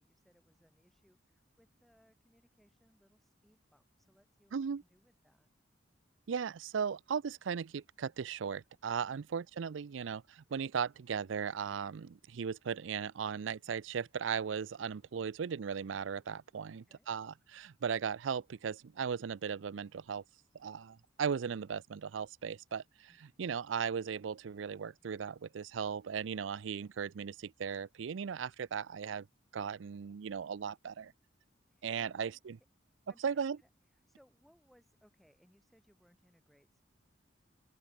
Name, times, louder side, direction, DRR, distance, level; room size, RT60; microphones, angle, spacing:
voice 1, 0.0-5.5 16.8-17.1 23.1-23.5 31.7-32.4 33.1-36.8, equal, ahead, 5.4 m, -69 dB
voice 2, 4.5-4.8 6.3-20.2 20.6-23.1 23.4-29.3 29.5-31.1 31.8-32.5 33.2-33.6, right 6 dB, 75° right, 0.4 m, -37 dB
open air
head